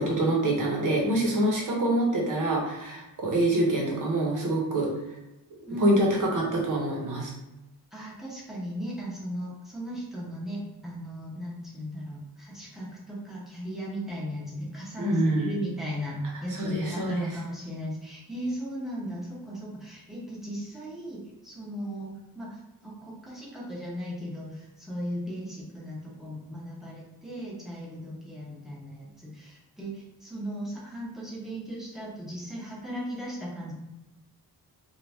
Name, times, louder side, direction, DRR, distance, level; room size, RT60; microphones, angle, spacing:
voice 1, 0.0-4.9 5.8-7.3 15.0-15.5 16.5-17.4, right 1 dB, 55° right, -2 dB, 1.0 m, -25 dB
voice 2, 7.9-33.7, equal, ahead, -6 dB, 0.8 m, -37 dB
3.0 x 2.5 x 3.4 m, 0.96 s
wide cardioid pair, 150°, 37 cm